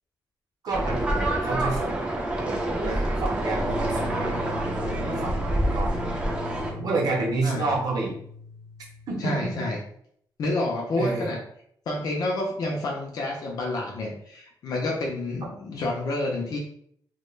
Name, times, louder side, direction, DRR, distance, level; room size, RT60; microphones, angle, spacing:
voice 1, 0.6-2.0 2.4-6.3 6.7-8.1 9.1-9.5 10.9-11.3, right 3 dB, 55° right, -1 dB, 0.7 m, -30 dB
sound 1, 0.7-6.7, right 1 dB, 15° right, 0.4 m, -27 dB
sound 2, 3.6-9.5, left 4 dB, 85° left, 0.8 m, -40 dB
voice 2, 9.2-9.8 10.4-11.4 11.9-16.6, left 2 dB, 55° left, -1 dB, 0.4 m, -29 dB
2.2 x 2.1 x 3.0 m, 0.67 s
wide cardioid pair, 175°, 8 cm